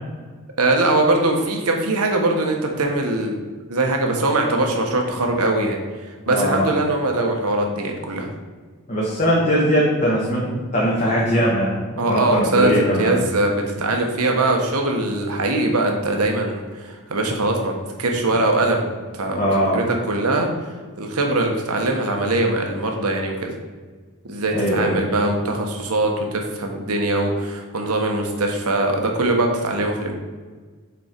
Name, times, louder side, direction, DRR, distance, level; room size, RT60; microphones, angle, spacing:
voice 1, 0.6-3.3 3.7-5.8 6.3-8.3 12.0-17.7 18.0-20.5 21.0-23.5 24.2-30.2, right 2 dB, 75° right, 2 dB, 1.2 m, -21 dB
voice 2, 6.3-6.7 8.9-11.7 12.1-13.1 19.4-19.8 24.5-25.0, equal, 35° left, -5 dB, 1.4 m, -20 dB
6.9 x 4.4 x 5.2 m, 1.5 s
head